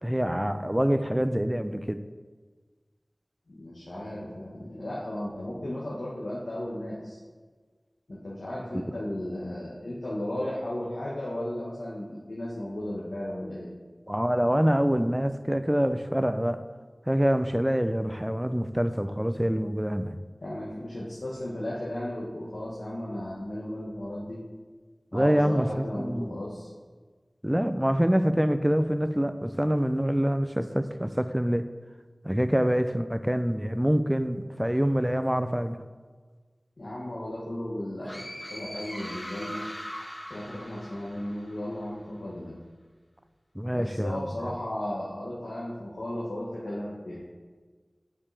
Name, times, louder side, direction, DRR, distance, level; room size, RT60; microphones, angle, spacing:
voice 1, 0.0-2.0 14.1-16.7 17.1-20.2 25.1-26.3 27.4-31.7 32.2-35.8 43.6-44.5, equal, 10° right, 10 dB, 0.4 m, -26 dB
voice 2, 3.5-7.2 8.1-13.7 20.4-24.4 25.1-26.7 36.8-38.2 38.5-39.6 40.3-42.6 43.7-47.2, left 1 dB, 85° left, -7 dB, 1.2 m, -35 dB
sound 1, 38.0-41.7, equal, 15° left, 1.1 m, -40 dB
8.6 x 5.0 x 3.3 m, 1.4 s
wide cardioid pair, 55°, 0 cm